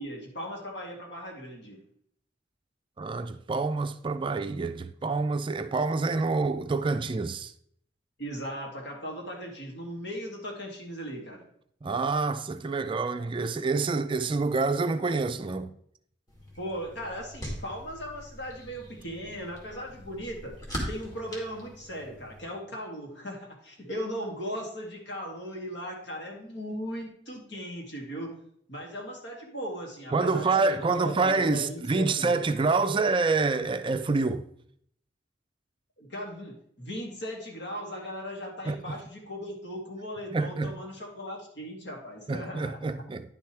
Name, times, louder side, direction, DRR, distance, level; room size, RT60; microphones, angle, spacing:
voice 1, 0.0-1.8 8.2-11.4 16.6-20.6 20.9-28.3 28.7-32.3 36.0-43.0, equal, 70° left, 2.3 m, -38 dB
voice 2, 3.0-7.5 11.8-15.7 30.1-34.4 38.7-39.0 40.3-40.7 42.3-43.3, right 3 dB, 30° right, 0.4 m, -27 dB
sound 1, 16.3-22.4, equal, 20° left, 2.3 m, -41 dB
10.0 x 6.5 x 3.3 m
head